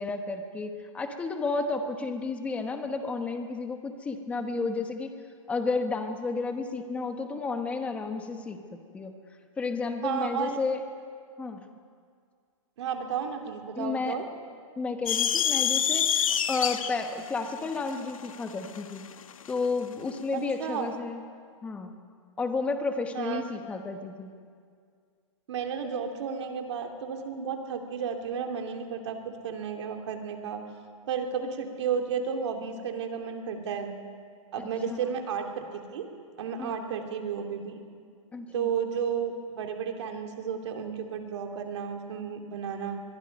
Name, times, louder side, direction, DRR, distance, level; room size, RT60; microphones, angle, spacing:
voice 1, 0.0-5.1 5.5-8.6 8.9-9.1 9.6-10.8 11.4-11.6 13.8-14.2 14.8-19.0 19.5-21.2 21.6-21.9 22.4-24.3 36.6-36.8 38.3-38.7, left 3 dB, 5° left, 6 dB, 1.0 m, -32 dB
voice 2, 10.0-10.6 12.8-14.2 20.3-20.9 23.1-23.4 25.5-30.6 31.1-33.9 34.5-36.0 36.4-37.7 38.5-43.0, right 7 dB, 55° right, 3 dB, 2.6 m, -32 dB
sound 1, 15.1-19.6, left 9 dB, 85° left, 1.2 m, -27 dB
24.5 x 22.0 x 5.3 m, 2.1 s
hypercardioid pair, 165°, 17 cm